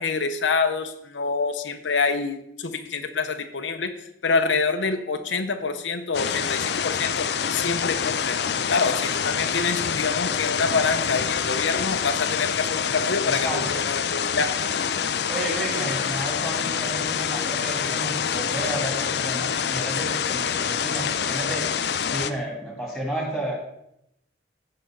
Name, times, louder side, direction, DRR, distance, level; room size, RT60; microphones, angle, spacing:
voice 1, 0.0-3.9 4.2-8.4 8.7-14.6, left 4 dB, 85° left, 6 dB, 0.8 m, -26 dB
sound 1, 6.1-22.3, left 7 dB, 60° left, 0.5 m, -26 dB
voice 2, 13.2-13.9 15.3-21.7 22.1-23.6, right 1 dB, ahead, -3 dB, 3.1 m, -32 dB
15.5 x 5.6 x 3.9 m, 0.77 s
head